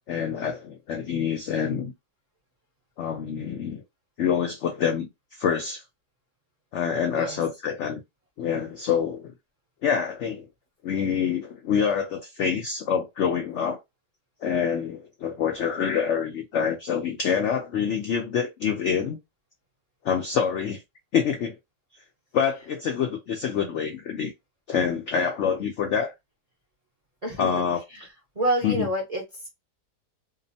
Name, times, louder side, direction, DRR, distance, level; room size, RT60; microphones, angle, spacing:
voice 1, 0.1-1.9 3.0-3.8 4.2-5.8 6.7-8.0 8.4-9.3 9.8-10.5 10.8-13.8 14.4-19.2 20.0-20.8 21.1-21.6 22.3-24.3 24.7-26.1 27.4-27.8 28.6-28.9, left 7 dB, 75° left, 0.6 m, -26 dB
voice 2, 27.2-27.6 27.9-29.5, right 1 dB, 35° right, 0.6 m, -29 dB
2.8 x 2.0 x 2.6 m
omnidirectional pair, 1.8 m